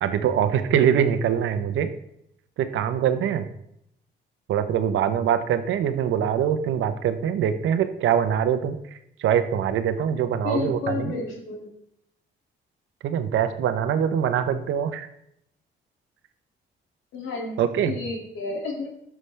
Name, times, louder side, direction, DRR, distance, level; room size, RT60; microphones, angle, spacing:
voice 1, 0.0-1.9 2.6-3.5 4.5-8.8 9.2-11.2 13.0-15.1 17.6-18.0, right 9 dB, 80° right, 10 dB, 0.9 m, -23 dB
voice 2, 10.4-11.7 17.1-17.6 17.9-18.9, left 3 dB, 85° left, 0 dB, 2.5 m, -30 dB
13.0 x 6.2 x 3.4 m, 0.76 s
cardioid pair, 90°, 20 cm